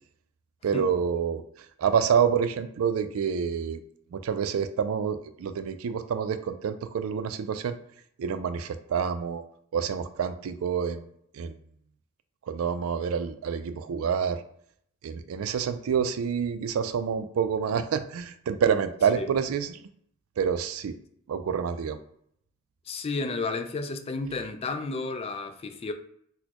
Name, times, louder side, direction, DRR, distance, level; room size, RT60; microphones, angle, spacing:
voice 1, 0.6-1.4 1.8-3.8 4.1-7.8 8.2-9.4 9.7-11.0 11.3-11.5 12.5-14.4 15.0-19.8 20.4-21.0 21.3-22.0, right 7 dB, 90° right, 0.3 m, -27 dB
voice 2, 22.9-25.9, left 3 dB, 30° left, 0.3 m, -32 dB
4.1 x 2.1 x 2.9 m
head